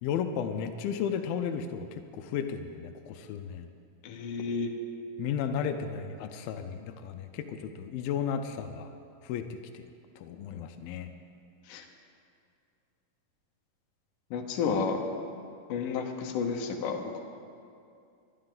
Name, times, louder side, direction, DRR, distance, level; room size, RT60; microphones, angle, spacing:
voice 1, 0.0-3.7 5.2-8.9 9.2-9.8 10.2-11.1, left 7 dB, 90° left, 7 dB, 2.5 m, -34 dB
voice 2, 4.0-4.7 11.7-11.8 14.3-15.0 15.7-17.2, left 5 dB, 70° left, 3 dB, 2.6 m, -31 dB
21.0 x 12.0 x 3.9 m, 2.4 s
omnidirectional pair, 4.1 m